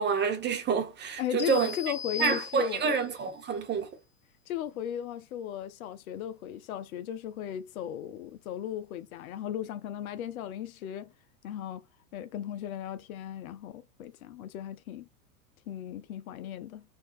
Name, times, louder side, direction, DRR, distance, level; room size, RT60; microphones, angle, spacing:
voice 1, 0.0-1.7 2.2-3.9, right 6 dB, 20° right, 1.2 m, -28 dB
voice 2, 1.2-2.8 4.5-11.1 11.4-11.8 12.1-15.1 15.7-16.8, left 11 dB, 60° left, 0.8 m, -36 dB
sound 1, 1.4-3.1, left 7 dB, 5° left, 0.7 m, -38 dB
4.5 x 2.7 x 4.3 m
hypercardioid pair, 115°, 47 cm